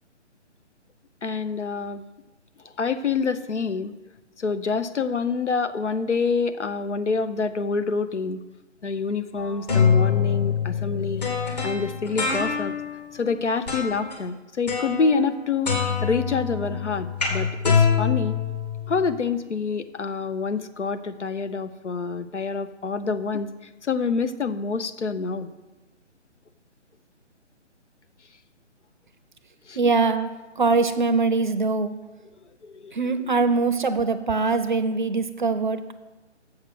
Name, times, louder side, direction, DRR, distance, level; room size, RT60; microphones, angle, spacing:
voice 1, 1.2-2.0 2.6-3.9 4.4-8.4 8.8-11.3 11.6-12.8 13.1-18.4 18.9-23.5 23.8-25.5 29.7-29.8 32.6-33.3, left 4 dB, 75° left, 10 dB, 0.7 m, -27 dB
sound 1, 9.4-13.0 13.7-14.1 14.7-15.4 15.7-19.2, left 6 dB, 35° left, 1.9 m, -24 dB
voice 2, 29.8-30.3 30.6-31.9 32.9-35.9, right 4 dB, 40° right, 11 dB, 0.6 m, -22 dB
7.2 x 6.4 x 6.2 m, 1.1 s
figure-of-eight pair, 145°, 36 cm